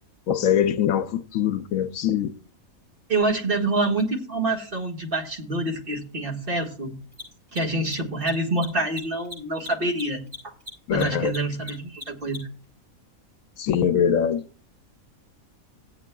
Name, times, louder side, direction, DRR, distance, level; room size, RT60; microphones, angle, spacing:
voice 1, 0.3-2.3 10.9-11.3 13.6-14.5, left 9 dB, 75° left, 1.0 m, -23 dB
voice 2, 3.1-6.9 7.5-10.5 10.9-12.4, right 2 dB, 40° right, 1.9 m, -26 dB
Mechanisms, 4.0-4.1 7.0-12.6, left 4 dB, 55° right, 7.0 m, -39 dB
18.5 x 8.3 x 2.2 m
omnidirectional pair, 1.5 m